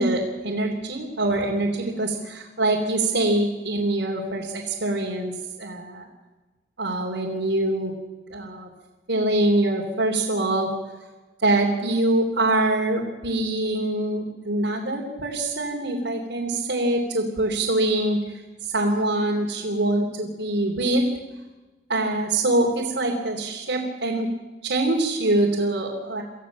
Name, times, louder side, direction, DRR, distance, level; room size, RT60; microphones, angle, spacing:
voice 1, 0.0-6.0 6.8-7.9 8.3-8.7 9.1-10.7 11.4-18.2 18.6-21.1 21.9-24.3 24.6-26.2, right 2 dB, 80° right, -2 dB, 3.3 m, -24 dB
26.5 x 15.0 x 7.4 m, 1.2 s
head